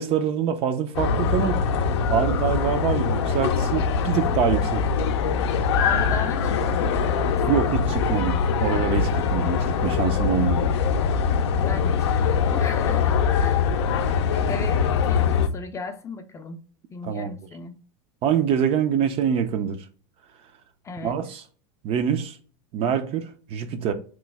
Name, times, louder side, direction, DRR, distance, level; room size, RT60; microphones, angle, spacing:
voice 1, 0.0-1.6 2.1-4.8 7.5-10.7 17.0-17.3 18.2-19.8 21.0-21.4 21.8-22.4 22.7-23.9, right 8 dB, 45° right, 0.5 m, -25 dB
sound 1, 0.9-15.5, left 6 dB, 80° left, 0.4 m, -23 dB
voice 2, 5.8-7.7 11.6-13.7 14.5-16.6 16.9-17.8 20.8-21.2, left 4 dB, 20° left, 0.4 m, -36 dB
3.0 x 2.0 x 3.3 m
supercardioid pair, 110°, 14 cm